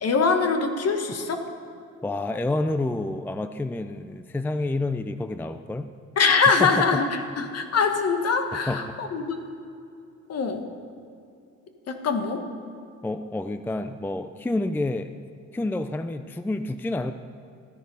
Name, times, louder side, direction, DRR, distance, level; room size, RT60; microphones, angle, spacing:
voice 1, 0.0-1.5 6.2-9.5 10.3-10.6 11.9-12.4, left 5 dB, 55° left, 6 dB, 1.4 m, -23 dB
voice 2, 2.0-5.9 6.6-7.0 8.7-8.9 13.0-15.1 15.5-17.1, left 2 dB, 5° left, 10 dB, 0.4 m, -28 dB
14.0 x 10.0 x 5.5 m, 2.5 s
cardioid pair, 90°, 30 cm